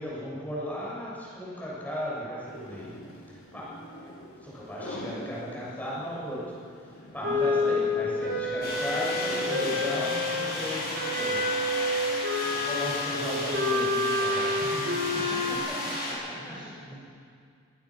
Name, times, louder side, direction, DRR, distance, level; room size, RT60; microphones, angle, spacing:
voice 1, 0.0-2.9 3.3-3.7 4.4-6.4 6.8-11.5 12.5-16.5, equal, 10° left, -7 dB, 7.0 m, -36 dB
sound 1, 2.5-10.1, left 2 dB, 70° left, 6.5 m, -42 dB
Wind instrument woodwind instrument, 7.2-10.5 10.9-15.6, left 2 dB, 55° right, 5.0 m, -28 dB
sound 2, 8.6-16.1, left 1 dB, 45° left, 7.9 m, -34 dB
voice 2, 12.4-13.4 14.6-15.6 15.8-16.0 16.3-17.0, right 1 dB, 20° right, -6 dB, 4.7 m, -44 dB
23.5 x 19.0 x 6.2 m, 2.2 s
head